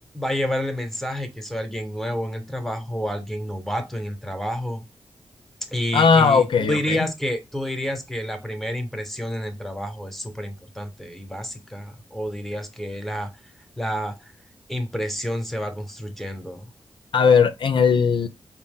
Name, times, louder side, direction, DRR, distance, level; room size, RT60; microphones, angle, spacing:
voice 1, 0.1-4.8 5.7-14.3 14.7-16.7, equal, 5° left, 0.8 m, -29 dB
voice 2, 5.9-7.1 17.1-18.3, left 5 dB, 65° left, 0.4 m, -18 dB
4.1 x 2.1 x 3.6 m
cardioid pair, 65°, 9 cm